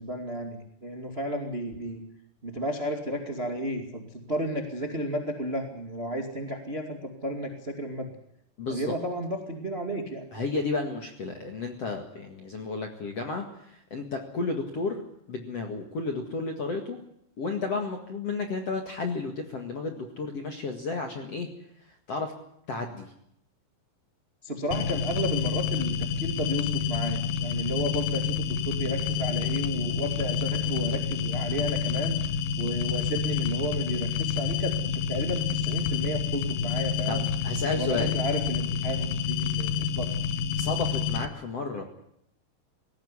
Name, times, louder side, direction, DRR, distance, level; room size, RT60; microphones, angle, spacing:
voice 1, 0.0-2.0 2.4-8.1 8.7-10.2 24.4-32.2 32.6-37.3 37.7-40.1, right 1 dB, 60° right, 4 dB, 0.6 m, -33 dB
voice 2, 8.6-8.9 10.3-15.0 15.3-17.0 17.4-21.5 22.1-22.3 22.7-23.1 37.1-38.1 40.6-41.8, left 3 dB, 55° left, 4 dB, 1.7 m, -32 dB
sound 1, 24.7-41.3, left 7 dB, 70° left, 2.8 m, -28 dB
19.5 x 17.0 x 9.8 m, 0.75 s
omnidirectional pair, 5.7 m